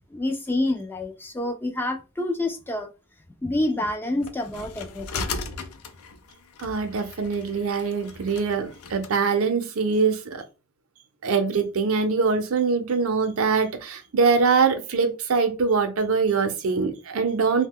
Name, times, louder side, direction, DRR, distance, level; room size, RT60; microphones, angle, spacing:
voice 1, 0.1-2.9 3.4-5.3, left 1 dB, 10° left, 0.3 m, -27 dB
sound 1, 4.2-9.1, left 4 dB, 85° left, 0.5 m, -37 dB
voice 2, 6.6-10.4 11.2-17.7, right 5 dB, 70° right, 0.6 m, -23 dB
2.8 x 2.2 x 3.5 m
head